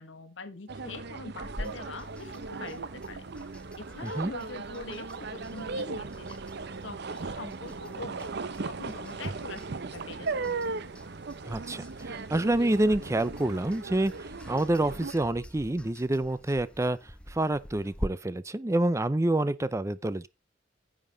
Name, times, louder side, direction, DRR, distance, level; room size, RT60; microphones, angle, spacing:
voice 1, 0.0-3.3 3.8-6.4 6.8-8.4 8.6-10.5, left 3 dB, 85° left, 1.3 m, -43 dB
sound 1, 0.7-15.1, right 3 dB, 60° right, 0.8 m, -37 dB
sound 2, 1.4-18.1, equal, 5° left, 0.9 m, -46 dB
voice 2, 4.0-4.3 11.5-14.1 14.5-17.0 17.3-20.3, right 1 dB, 15° right, 0.5 m, -27 dB
10.0 x 7.5 x 3.9 m
head